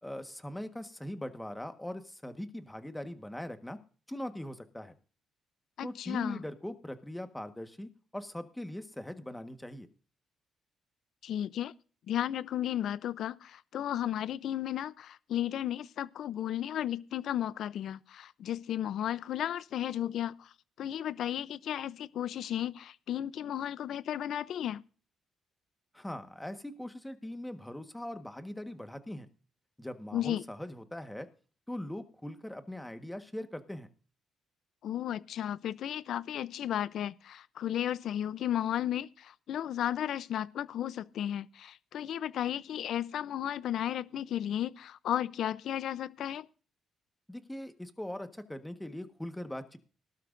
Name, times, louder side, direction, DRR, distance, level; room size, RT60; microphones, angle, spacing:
voice 1, 0.0-3.8 4.1-4.9 5.8-9.9 25.9-29.3 29.8-31.3 31.7-33.9 47.3-49.8, left 1 dB, 5° left, 1.4 m, -41 dB
voice 2, 5.8-6.4 11.2-11.7 12.1-20.5 20.8-24.8 30.1-30.4 34.8-46.5, left 11 dB, 70° left, 0.6 m, -34 dB
18.5 x 12.5 x 2.6 m
cardioid pair, 90°, 0 cm